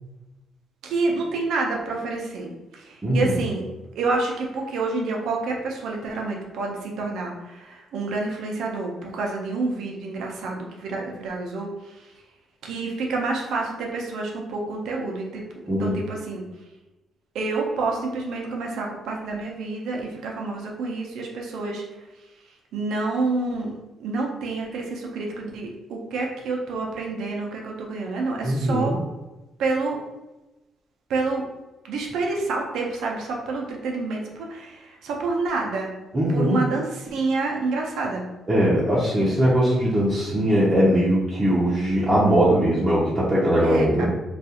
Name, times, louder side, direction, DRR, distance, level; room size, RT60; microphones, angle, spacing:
voice 1, 0.8-3.6 4.0-12.1 12.6-15.4 15.8-16.4 17.3-21.8 22.7-23.7 24.0-28.9 29.6-30.0 31.1-31.5 31.8-35.9 36.3-38.3 43.6-44.1, right 3 dB, 80° right, 0 dB, 0.5 m, -28 dB
voice 2, 3.0-3.3 15.7-15.9 28.4-29.0 36.1-36.6 38.5-44.1, equal, 25° right, -8 dB, 0.6 m, -20 dB
2.4 x 2.3 x 2.8 m, 1.1 s
cardioid pair, 90°, 0 cm